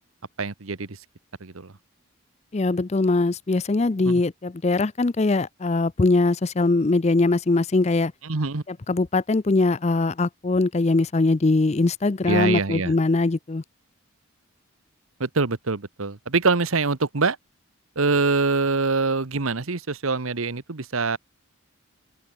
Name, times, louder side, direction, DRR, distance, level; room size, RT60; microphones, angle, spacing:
voice 1, 0.4-1.0 1.4-1.7 4.0-4.2 8.2-8.6 12.3-12.9 15.2-17.4 18.0-21.2, right 4 dB, 75° right, 1.2 m, -24 dB
voice 2, 2.5-8.1 8.9-13.6, left 3 dB, 30° left, 0.5 m, -21 dB
open air
head